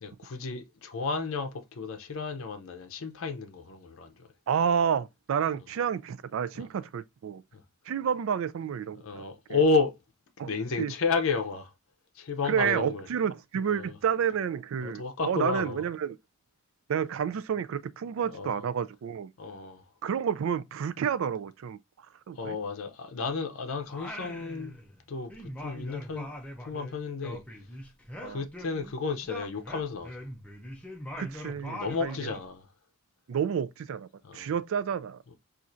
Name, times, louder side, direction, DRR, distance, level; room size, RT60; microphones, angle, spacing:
voice 1, 0.0-4.3 6.5-6.7 7.5-7.6 9.0-10.0 10.4-11.7 12.1-13.1 13.7-14.0 14.8-15.8 18.3-18.6 19.4-19.8 22.3-24.7 25.1-25.3 25.6-26.3 26.6-27.4 28.3-30.2 31.7-32.7 34.2-34.5, left 4 dB, 80° left, 0.5 m, -32 dB
voice 2, 4.5-7.4 7.9-9.2 10.4-10.5 10.8-10.9 12.4-16.2 16.9-19.3 20.0-21.8 22.3-22.6 28.2-28.4 31.2-32.2 33.3-35.2, right 7 dB, 80° right, 0.3 m, -30 dB
Singing, 23.9-25.0 25.3-28.9 29.2-32.5, left 1 dB, 5° left, 0.5 m, -42 dB
4.2 x 2.5 x 2.5 m
head